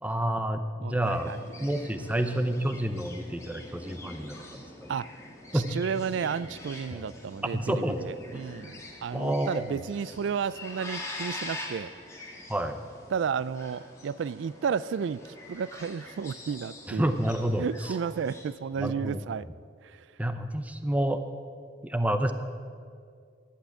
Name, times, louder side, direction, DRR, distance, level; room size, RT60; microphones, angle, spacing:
voice 1, 0.0-1.3 1.6-4.9 5.5-5.7 6.9-7.1 7.5-8.0 9.1-9.6 12.5-12.9 17.0-17.6 18.8-19.2 20.2-21.2 21.8-22.3, right 1 dB, 10° right, 8 dB, 0.6 m, -29 dB
voice 2, 0.8-1.7 4.9-5.1 5.5-11.9 13.1-17.2 17.6-19.5 19.8-20.2, right 6 dB, 75° right, 19 dB, 0.3 m, -33 dB
sound 1, 1.0-18.4, left 2 dB, 15° left, 1.8 m, -44 dB
11.5 x 8.6 x 8.9 m, 2.2 s
head